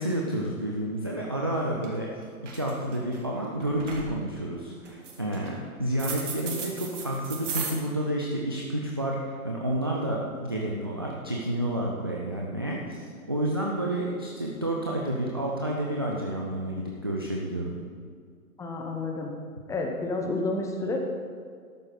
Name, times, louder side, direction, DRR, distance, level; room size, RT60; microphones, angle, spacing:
voice 1, 0.0-2.1 2.5-17.8, right 1 dB, 20° right, -3 dB, 0.3 m, -30 dB
sound 1, 1.4-1.5 1.8-2.1 2.4-3.2 3.6-4.1 4.8-5.5 6.0-7.7, right 6 dB, 55° right, 2.5 m, -35 dB
voice 2, 18.6-19.3 19.7-21.0, left 2 dB, 5° left, 2 dB, 0.9 m, -30 dB
13.0 x 10.5 x 4.0 m, 2.1 s
figure-of-eight pair, 125°, 44 cm